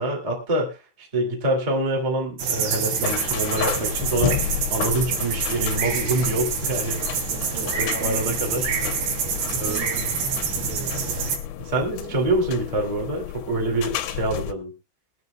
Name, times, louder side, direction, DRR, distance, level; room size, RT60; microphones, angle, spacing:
voice 1, 0.0-7.2 7.6-8.7 9.5-9.8 11.6-14.7, right 2 dB, 40° right, 0 dB, 0.5 m, -26 dB
sound 1, 2.4-11.4, right 6 dB, 60° right, 3.9 m, -27 dB
sound 2, 3.0-14.5, left 11 dB, 80° left, 2.4 m, -32 dB
voice 2, 7.3-8.6 9.4-10.1 10.3-11.3 12.0-12.3, right 9 dB, 85° right, 5 dB, 4.6 m, -40 dB
23.0 x 9.3 x 2.3 m, 0.27 s
omnidirectional pair, 5.9 m